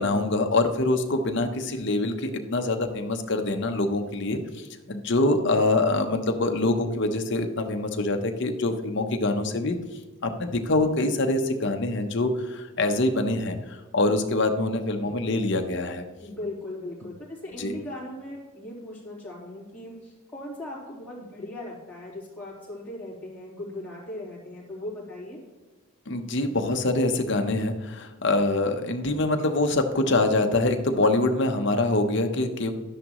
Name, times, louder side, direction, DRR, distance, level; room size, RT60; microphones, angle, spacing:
voice 1, 0.0-9.8 10.2-16.0 17.6-17.7 26.1-32.7, left 2 dB, 55° left, 5 dB, 0.9 m, -25 dB
voice 2, 16.2-25.4, left 1 dB, 10° left, -8 dB, 3.6 m, -38 dB
12.0 x 10.0 x 3.1 m, 1.2 s
head